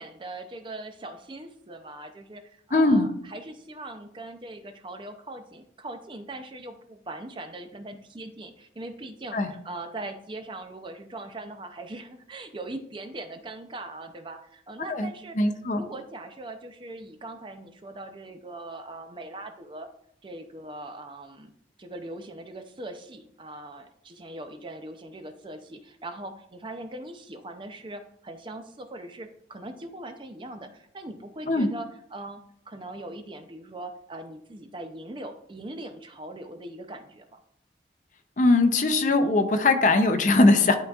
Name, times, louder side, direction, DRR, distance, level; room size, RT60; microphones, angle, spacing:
voice 1, 0.0-15.4 15.7-19.9 20.2-21.5 21.8-37.4, right 2 dB, 30° right, 7 dB, 0.5 m, -40 dB
voice 2, 2.7-3.1 9.3-9.5 14.9-15.1 15.4-15.8 31.5-31.7 38.4-40.8, left 2 dB, 45° left, 8 dB, 0.6 m, -20 dB
11.5 x 3.8 x 2.4 m, 0.70 s
head